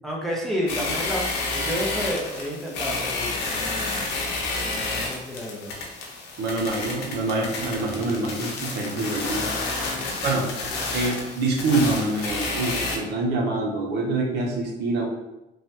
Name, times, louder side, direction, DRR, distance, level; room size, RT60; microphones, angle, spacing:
voice 1, 0.0-1.2 1.5-4.0 4.5-5.7 9.8-10.2, equal, ahead, -3 dB, 0.6 m, -31 dB
sound 1, 0.7-13.0, left 3 dB, 85° left, 0.6 m, -30 dB
voice 2, 6.4-9.5 10.2-10.4 10.9-15.1, right 2 dB, 80° right, 0 dB, 0.7 m, -25 dB
3.1 x 2.2 x 2.7 m, 0.96 s
cardioid pair, 110°, 17 cm